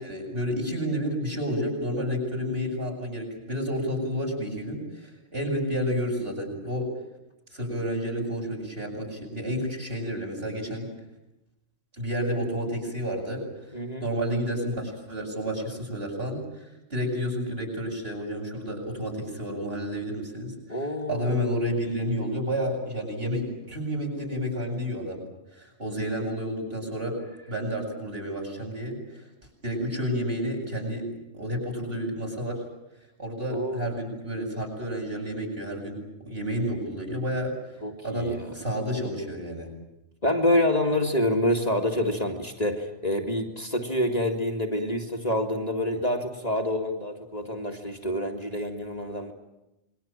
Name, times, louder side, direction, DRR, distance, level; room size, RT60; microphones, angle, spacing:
voice 1, 0.0-6.9 7.5-10.9 12.0-13.4 14.0-25.2 25.5-27.1 27.5-29.2 29.6-31.1 31.3-32.6 33.2-35.9 36.2-37.5 38.0-39.7, equal, 50° right, -1 dB, 8.0 m, -30 dB
voice 2, 13.7-14.1 20.7-21.5 33.5-33.9 37.8-38.5 40.2-49.3, left 1 dB, 30° left, 2 dB, 2.4 m, -27 dB
28.0 x 22.5 x 9.0 m, 0.91 s
omnidirectional pair, 1.3 m